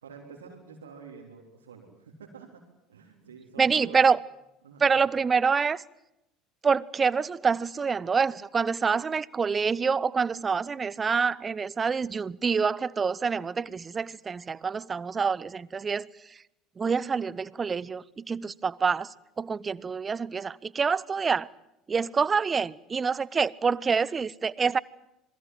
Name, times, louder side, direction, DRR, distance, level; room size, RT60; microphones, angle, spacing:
voice 1, 0.0-2.6 2.9-4.1 4.6-5.0, right 5 dB, 80° right, 3.7 m, -48 dB
voice 2, 3.6-4.2 4.8-5.8 6.6-16.1 16.8-19.1 19.4-21.5 21.9-24.8, right 5 dB, 30° right, 0.8 m, -26 dB
27.0 x 22.0 x 7.8 m
figure-of-eight pair, 65°, 0 cm